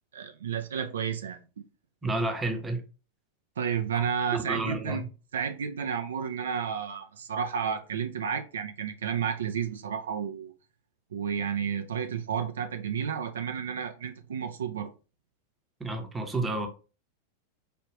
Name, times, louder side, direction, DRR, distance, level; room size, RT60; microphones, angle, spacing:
voice 1, 0.1-1.4 3.6-5.0 5.3-10.5 11.1-14.9, right 7 dB, 65° right, 0.4 m, -31 dB
voice 2, 2.0-2.8 3.9-4.0 4.3-5.1 15.8-16.7, right 2 dB, 10° right, 0.8 m, -30 dB
4.9 x 2.4 x 3.1 m
figure-of-eight pair, 90°, 0 cm